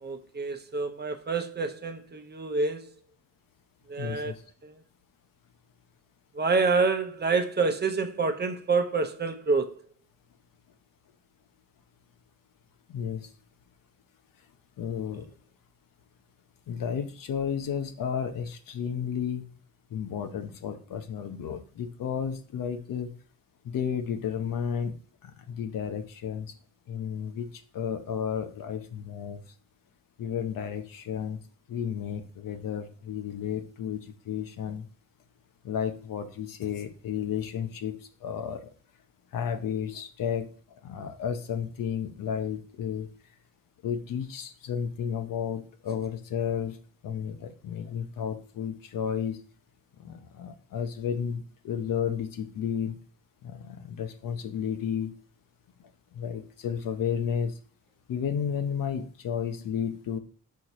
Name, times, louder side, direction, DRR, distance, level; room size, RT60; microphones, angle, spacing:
voice 1, 0.0-2.9 3.9-4.3 4.6-4.8 6.3-9.8, right 4 dB, 30° right, 0.8 m, -27 dB
voice 2, 4.0-4.4 12.9-13.3 14.8-15.3 16.7-19.5 19.9-23.1 23.6-24.9 25.2-26.5 26.9-29.4 30.2-31.4 31.7-34.9 35.6-38.7 39.3-43.1 43.8-46.8 47.0-49.4 50.0-53.0 53.4-55.1 56.1-57.5 58.1-60.2, left 8 dB, 80° left, 0.9 m, -32 dB
4.6 x 4.5 x 5.4 m
cardioid pair, 115°, 33 cm